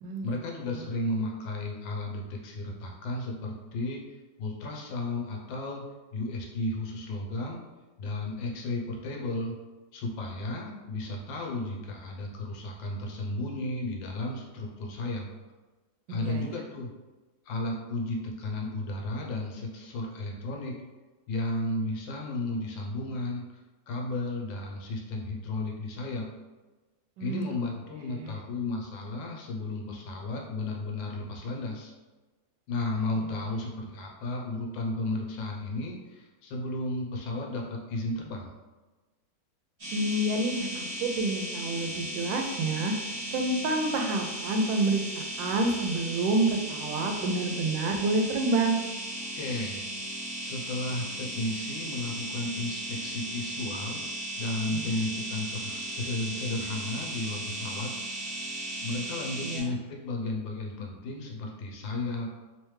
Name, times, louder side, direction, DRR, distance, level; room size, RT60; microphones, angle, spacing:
voice 1, 0.2-4.1 4.4-5.9 6.1-7.6 8.0-9.6 9.9-15.3 16.1-16.9 17.4-20.8 21.3-23.5 23.9-26.3 27.2-31.9 32.7-38.5 49.3-49.8 50.4-54.1 54.4-57.9 58.8-62.3, left 2 dB, 90° left, 0 dB, 1.5 m, -33 dB
voice 2, 16.1-16.5 27.2-27.5 28.1-28.4 39.9-42.9 43.3-48.8 59.4-59.7, right 2 dB, 90° right, 4 dB, 1.3 m, -28 dB
sound 1, 39.8-59.6, right 1 dB, 35° right, 1.5 m, -36 dB
3.4 x 3.2 x 3.1 m, 1.2 s
omnidirectional pair, 2.0 m